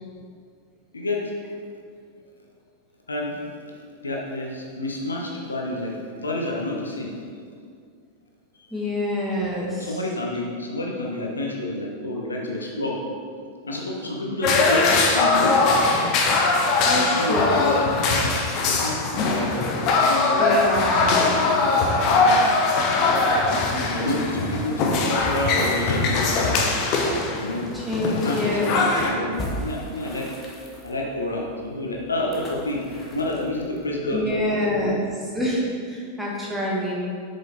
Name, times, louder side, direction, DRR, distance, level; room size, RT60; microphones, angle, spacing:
voice 1, 0.9-1.3 3.1-3.5 4.0-7.1 8.6-8.7 9.8-13.0 13.6-15.6 16.9-20.6 21.2-21.7 22.1-22.5 23.9-26.6 27.4-27.7 28.0-30.3 30.8-32.8 33.1-34.2 34.6-35.1, left 1 dB, 75° left, -1 dB, 1.0 m, -29 dB
voice 2, 8.7-9.9 16.9-17.5 20.4-21.1 27.7-28.7 34.0-35.0 35.3-36.9, left 1 dB, ahead, -6 dB, 1.8 m, -26 dB
sound 1, 14.4-29.1, left 3 dB, 40° left, 0.9 m, -21 dB
sound 2, 29.3-34.5, equal, 25° left, 1.3 m, -39 dB
7.5 x 5.3 x 4.0 m, 2.2 s
figure-of-eight pair, 90°, 0 cm